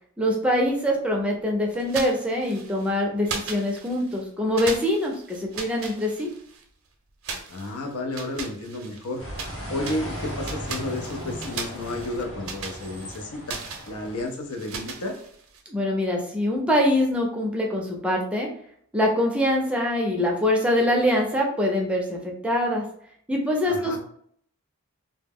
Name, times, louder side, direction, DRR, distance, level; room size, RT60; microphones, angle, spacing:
voice 1, 0.2-6.3 15.7-18.5 18.9-22.8 23.3-24.0, left 1 dB, 5° right, -1 dB, 0.4 m, -24 dB
sound 1, 1.8-2.9 3.2-4.2 4.6-6.6 7.2-9.6 9.8-15.6, right 5 dB, 70° right, 0.5 m, -38 dB
voice 2, 7.5-9.3 9.7-13.6 13.9-15.2 23.6-24.0, left 2 dB, 90° left, 3 dB, 0.6 m, -32 dB
sound 2, 9.2-14.3, equal, 75° left, 1.0 m, -37 dB
2.2 x 2.0 x 3.4 m, 0.63 s
head